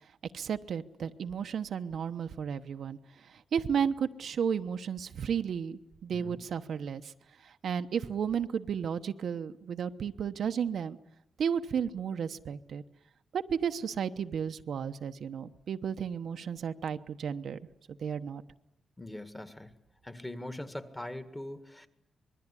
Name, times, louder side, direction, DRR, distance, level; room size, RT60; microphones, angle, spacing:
voice 1, 0.3-7.1 7.4-11.0 11.4-12.8 13.3-17.6 17.9-18.4, right 7 dB, 65° right, 8 dB, 1.0 m, -33 dB
voice 2, 19.0-19.7 20.0-21.9, left 1 dB, 10° left, 10 dB, 1.9 m, -41 dB
25.5 x 22.0 x 9.8 m, 0.80 s
wide cardioid pair, 140°, 0 cm